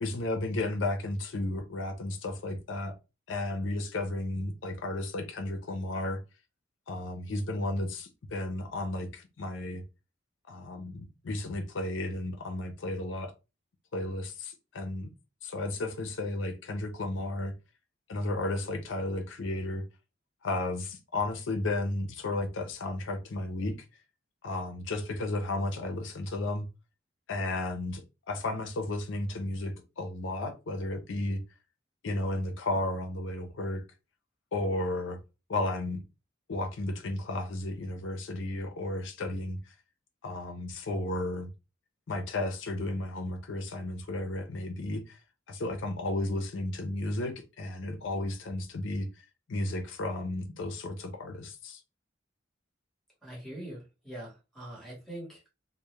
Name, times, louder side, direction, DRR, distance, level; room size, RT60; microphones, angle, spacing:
voice 1, 0.0-3.0 3.3-6.2 6.9-9.8 10.5-13.3 13.9-15.1 15.4-17.5 18.1-19.8 20.4-23.8 24.4-26.7 27.3-28.0 28.3-31.4 32.0-33.8 34.5-35.2 35.5-36.0 36.5-39.6 40.2-41.5 42.1-45.2 45.5-51.8, left 2 dB, 75° left, 0.5 m, -33 dB
voice 2, 53.2-55.5, right 1 dB, ahead, 1.1 m, -43 dB
2.2 x 2.0 x 3.0 m
head